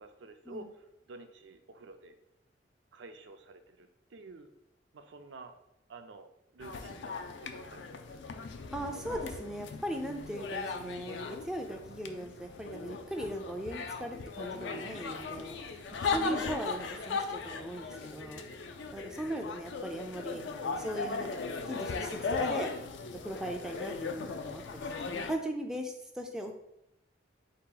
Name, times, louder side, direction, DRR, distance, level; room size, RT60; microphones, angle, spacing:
voice 1, 0.0-2.2 2.9-4.5 4.9-5.6 5.9-8.0 16.3-16.5 19.1-19.5, right 3 dB, 70° right, 7 dB, 0.4 m, -51 dB
sound 1, 6.6-25.3, left 4 dB, 70° left, 0.4 m, -38 dB
voice 2, 8.7-18.4 18.9-21.4 21.7-22.7 23.2-26.5, right 1 dB, 5° right, 2 dB, 0.3 m, -39 dB
sound 2, 12.4-19.8, left 1 dB, 90° left, 0.9 m, -56 dB
4.2 x 2.8 x 3.7 m, 0.81 s
head